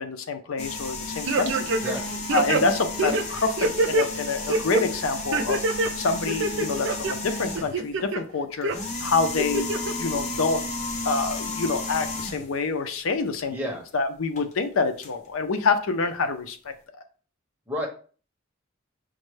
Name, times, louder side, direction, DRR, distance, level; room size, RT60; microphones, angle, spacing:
voice 1, 0.0-1.7 2.3-5.6 6.0-8.7 9.0-10.6 11.0-13.6 13.9-16.7, left 4 dB, 80° left, 8 dB, 0.5 m, -27 dB
sound 1, 0.6-7.9 8.6-12.6 14.4-14.5 15.0-15.1, left 2 dB, 35° left, 0.6 m, -33 dB
sound 2, 1.3-2.0 2.3-4.1 4.5-4.8 5.3-5.9 6.3-7.1 7.6-8.2 8.6-8.8 9.4-9.9 10.3-10.4, right 2 dB, 60° right, 0.5 m, -25 dB
voice 2, 1.8-2.2 13.5-13.8 17.7-17.9, equal, 10° right, -1 dB, 1.0 m, -31 dB
6.3 x 2.2 x 3.1 m, 0.40 s
head